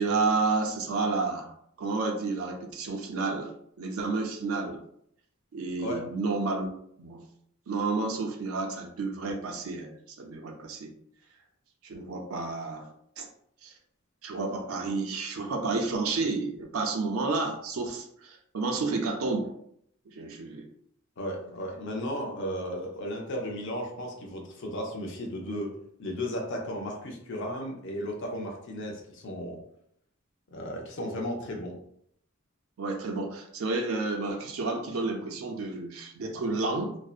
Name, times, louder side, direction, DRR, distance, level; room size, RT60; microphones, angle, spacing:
voice 1, 0.0-1.5 1.8-3.5 3.8-4.8 5.5-6.7 7.0-7.2 7.7-10.9 11.8-12.9 13.2-13.3 13.6-13.7 14.2-19.5 20.2-20.6 32.8-37.0, right 3 dB, 75° right, 2 dB, 0.4 m, -30 dB
voice 2, 21.2-25.7 26.0-29.6 30.5-31.8, equal, 60° left, 0 dB, 0.5 m, -35 dB
2.6 x 2.1 x 2.3 m, 0.68 s
head